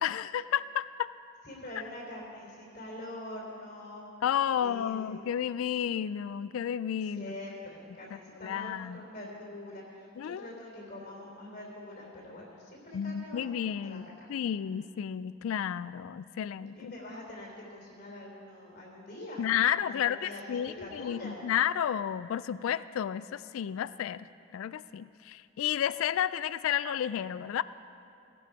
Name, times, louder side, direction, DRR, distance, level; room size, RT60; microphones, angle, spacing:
voice 1, 0.0-1.1 4.2-7.3 8.4-9.0 10.2-10.5 12.9-16.9 19.4-24.3 24.5-27.6, left 9 dB, 75° left, 17 dB, 0.3 m, -31 dB
voice 2, 1.4-4.1 4.6-5.2 7.0-14.3 16.8-19.5 19.8-21.4, left 1 dB, 45° left, -2 dB, 3.3 m, -44 dB
17.5 x 11.5 x 4.7 m, 2.7 s
head